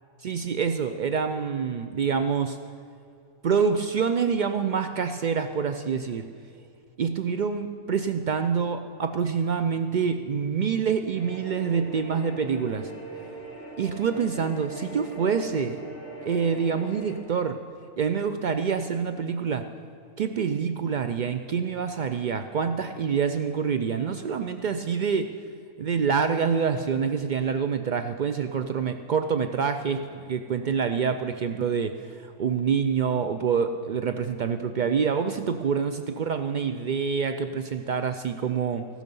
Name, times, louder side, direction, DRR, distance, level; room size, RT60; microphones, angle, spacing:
voice 1, 0.2-2.6 3.4-6.3 7.0-12.9 13.8-15.8 16.2-17.6 18.0-19.7 20.2-25.3 25.8-31.9 32.4-38.9, right 6 dB, 85° right, 8 dB, 0.4 m, -26 dB
sound 1, 11.1-17.1, right 2 dB, 40° left, 3.4 m, -41 dB
15.0 x 12.5 x 5.3 m, 2.5 s
omnidirectional pair, 1.4 m